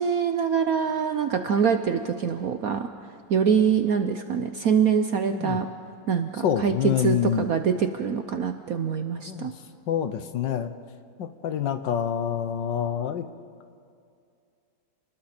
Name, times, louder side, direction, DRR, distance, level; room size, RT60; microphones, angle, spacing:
voice 1, 0.0-2.9 3.3-5.6 6.1-9.5, right 7 dB, 60° right, 7 dB, 0.9 m, -24 dB
voice 2, 6.4-7.4 9.3-9.5 9.9-10.7 11.2-13.2, left 9 dB, 65° left, 10 dB, 1.5 m, -26 dB
29.5 x 20.5 x 4.4 m, 2.4 s
omnidirectional pair, 2.2 m